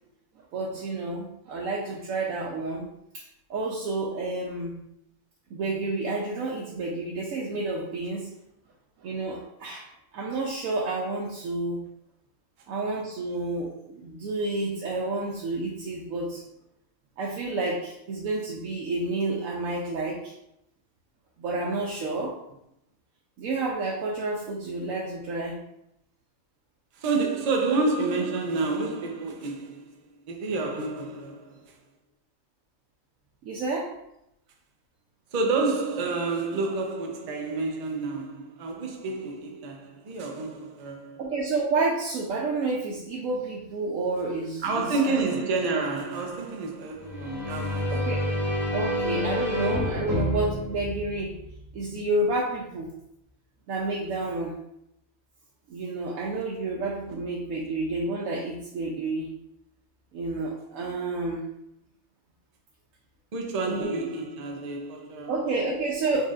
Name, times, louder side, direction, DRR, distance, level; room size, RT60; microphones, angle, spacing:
voice 1, 0.5-2.9 3.1-3.2 3.5-4.8 5.5-8.3 9.0-9.9 10.1-11.8 12.7-16.4 17.2-20.3 21.4-22.4 23.4-25.6 33.4-34.0 41.2-45.3 47.9-48.3 48.7-51.4 51.7-52.9 53.7-54.6 55.7-59.3 60.1-61.4 63.7-64.0 65.3-66.3, right 2 dB, 90° right, 1.0 m, -30 dB
voice 2, 26.9-29.9 30.3-31.8 35.3-41.2 44.6-48.1 63.3-65.5 66.2-66.3, right 3 dB, 50° right, 0.5 m, -29 dB
sound 1, 47.0-51.8, equal, ahead, 1.3 m, -29 dB
4.0 x 3.8 x 2.4 m
omnidirectional pair, 1.4 m